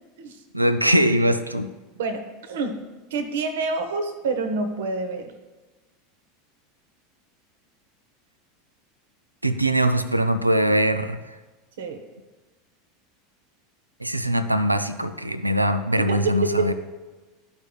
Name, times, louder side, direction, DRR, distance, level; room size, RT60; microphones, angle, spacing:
voice 1, 0.5-1.7 9.4-11.2 14.0-16.7, right 1 dB, 90° right, 11 dB, 0.4 m, -22 dB
voice 2, 2.0-2.7 3.1-5.3 11.8-12.0 16.0-16.2 16.6-16.7, right 3 dB, 65° right, 8 dB, 0.8 m, -27 dB
13.5 x 5.1 x 2.3 m, 1.2 s
figure-of-eight pair, 80°, 0 cm